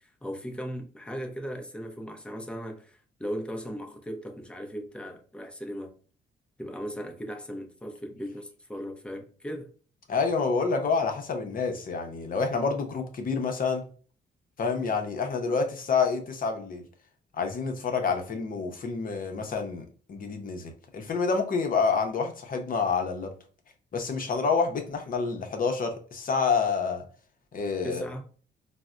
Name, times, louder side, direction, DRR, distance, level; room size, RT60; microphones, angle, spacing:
voice 1, 0.0-5.9 6.6-9.7 27.8-28.2, equal, 5° left, 0.5 m, -37 dB
voice 2, 10.1-13.8 14.6-16.8 17.3-23.3 23.9-27.0 27.5-28.0, left 5 dB, 45° left, 0.7 m, -28 dB
4.0 x 2.1 x 2.4 m
cardioid pair, 90°, 20 cm